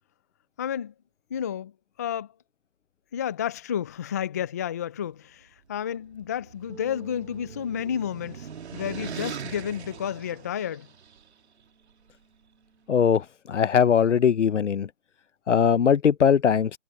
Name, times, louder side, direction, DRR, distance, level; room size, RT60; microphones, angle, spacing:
voice 1, 0.6-0.9 1.3-1.7 2.0-2.3 3.1-10.9, left 9 dB, 15° left, 0.4 m, -31 dB
sound 1, 6.0-11.2, right 7 dB, 60° right, 2.7 m, -40 dB
sound 2, 6.7-12.9, right 4 dB, 75° right, 4.7 m, -53 dB
voice 2, 12.9-13.2 13.5-14.9 15.5-16.7, left 7 dB, 70° left, 1.0 m, -20 dB
figure-of-eight pair, 140°, 37 cm